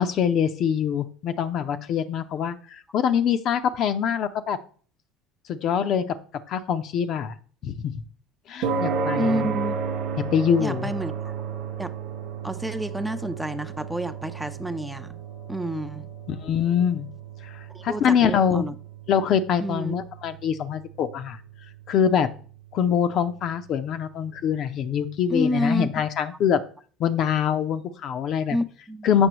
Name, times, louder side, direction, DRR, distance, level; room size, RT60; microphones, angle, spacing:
voice 1, 0.0-4.6 5.5-6.1 6.5-7.3 7.6-8.0 8.5-9.5 10.2-10.9 16.3-17.1 17.5-18.6 19.1-21.4 21.9-22.3 22.7-26.6 27.0-28.6 29.0-29.3, left 8 dB, 50° left, 0.6 m, -24 dB
sound 1, 8.6-25.1, right 5 dB, 70° right, 0.9 m, -34 dB
voice 2, 9.2-9.8 10.6-11.3 11.8-11.9 12.4-15.2 15.5-16.1 17.7-18.7 19.6-20.0 25.3-25.9 28.5-29.1, equal, 5° right, 0.5 m, -29 dB
7.9 x 5.9 x 2.9 m
hypercardioid pair, 65°, 0 cm